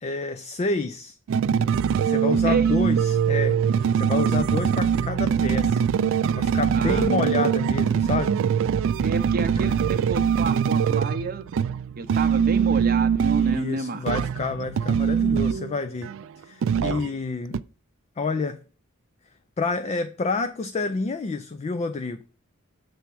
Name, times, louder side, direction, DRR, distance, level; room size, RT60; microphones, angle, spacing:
voice 1, 0.0-1.2 2.0-5.8 6.4-8.4 9.7-9.8 13.4-16.1 16.4-17.6 18.2-18.6 19.6-22.2, left 3 dB, 30° left, 0.3 m, -29 dB
sound 1, 1.3-13.6 14.1-15.8 16.0-17.2 17.5-17.6, right 7 dB, 65° right, 0.3 m, -23 dB
voice 2, 2.4-2.8 6.7-7.1 9.0-11.5 12.0-14.0, right 4 dB, 45° right, 0.7 m, -30 dB
7.1 x 3.5 x 6.0 m
head